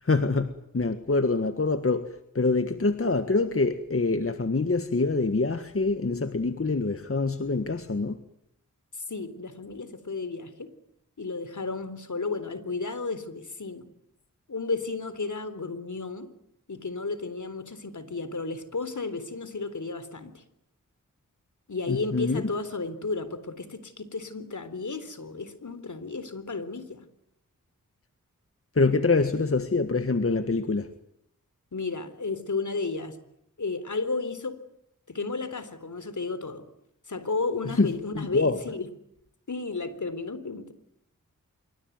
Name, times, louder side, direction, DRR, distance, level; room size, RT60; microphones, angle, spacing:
voice 1, 0.0-8.2 21.9-22.4 28.7-30.9 37.6-38.6, left 3 dB, 40° left, 1.7 m, -25 dB
voice 2, 8.9-10.7 11.2-13.9 14.5-16.3 16.7-20.4 21.7-27.1 31.7-33.2 33.6-34.6 35.1-36.7 37.1-38.9 39.5-40.7, left 3 dB, 60° left, 3.8 m, -33 dB
26.5 x 24.0 x 9.5 m
cardioid pair, 50°, 33 cm